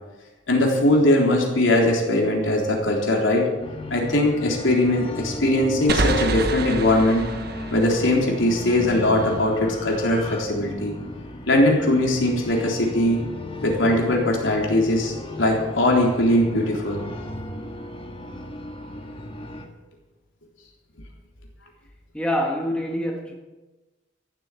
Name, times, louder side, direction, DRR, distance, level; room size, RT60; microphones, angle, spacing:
voice 1, 0.5-3.5 3.9-7.3 7.7-11.0 11.5-13.2 13.6-17.0, left 1 dB, 75° left, -1 dB, 3.7 m, -20 dB
sound 1, 3.6-19.7, left 1 dB, 25° left, 1.6 m, -36 dB
sound 2, 5.9-9.4, right 3 dB, 50° right, 1.0 m, -28 dB
voice 2, 22.1-23.3, equal, 5° left, 0 dB, 1.5 m, -25 dB
15.0 x 8.0 x 8.4 m, 1.2 s
head